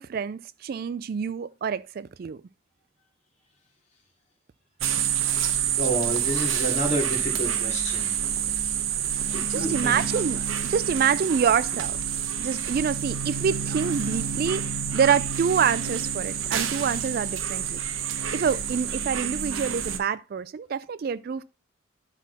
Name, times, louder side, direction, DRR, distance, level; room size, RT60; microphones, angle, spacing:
voice 1, 0.0-2.4 9.5-12.0 12.4-17.8 18.3-21.4, right 7 dB, 50° right, 0.3 m, -26 dB
sound 1, 4.8-20.0, right 8 dB, 90° right, 1.0 m, -28 dB
voice 2, 5.8-8.1 9.3-10.0, right 1 dB, 35° left, 2.8 m, -29 dB
11.0 x 4.2 x 4.1 m
head